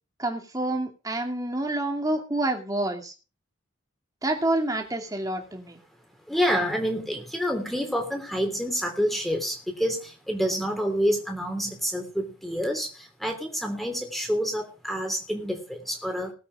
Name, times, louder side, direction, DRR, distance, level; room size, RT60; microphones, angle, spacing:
voice 1, 0.2-3.1 4.2-5.8, right 1 dB, 15° right, 3 dB, 2.5 m, -28 dB
voice 2, 6.3-12.9 13.2-16.3, equal, ahead, 4 dB, 3.1 m, -28 dB
19.5 x 8.3 x 4.9 m, 0.34 s
head